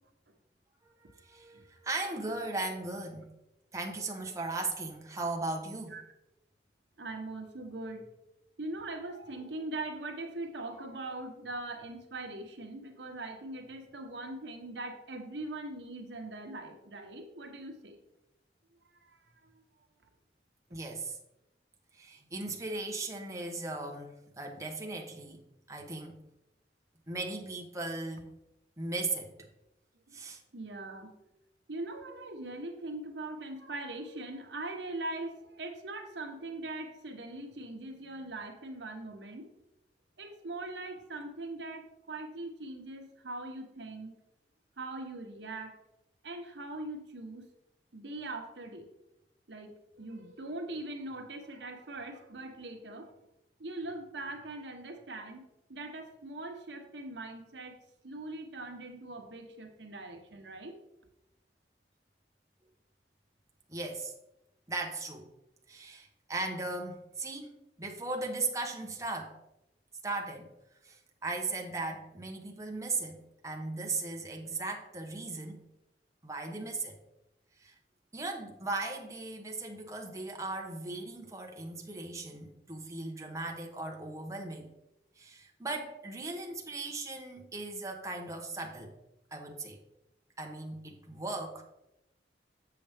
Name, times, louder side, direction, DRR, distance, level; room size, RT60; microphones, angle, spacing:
voice 1, 1.0-3.3 3.7-6.0 20.7-21.2 21.9-25.4 25.7-26.1 27.1-28.3 28.8-29.5 30.1-30.4 63.7-64.1 64.7-65.3 65.7-67.5 67.8-69.4 70.0-70.5 70.8-73.2 73.4-75.6 76.2-77.0 77.6-77.7 78.1-84.7 85.2-88.9 89.3-89.8 90.4-91.6, right 3 dB, 20° right, 1 dB, 1.0 m, -37 dB
voice 2, 7.0-8.1 8.6-18.0 19.0-19.6 30.1-30.2 30.5-31.1 31.7-39.5 40.2-44.2 44.8-45.8 46.2-47.5 47.9-48.9 49.5-53.1 53.6-55.4 55.7-57.8 58.0-60.8, right 2 dB, 85° right, 4 dB, 1.1 m, -41 dB
7.2 x 6.9 x 3.5 m, 0.87 s
head